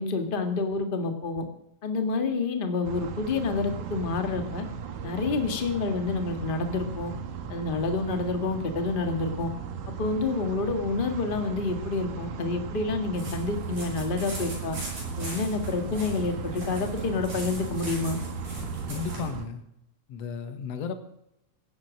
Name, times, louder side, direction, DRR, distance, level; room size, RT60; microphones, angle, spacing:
voice 1, 0.0-1.4 1.8-4.6 5.0-7.1 7.5-9.5 9.9-14.8 15.2-18.2, left 3 dB, 25° left, 6 dB, 1.3 m, -28 dB
sound 1, 2.8-19.5, right 6 dB, 85° right, 2.9 m, -37 dB
sound 2, 13.1-19.3, right 2 dB, 60° right, 8.3 m, -38 dB
voice 2, 18.9-19.6 20.1-20.9, left 6 dB, 60° left, 9 dB, 2.3 m, -34 dB
16.0 x 10.5 x 6.4 m, 0.82 s
omnidirectional pair, 3.4 m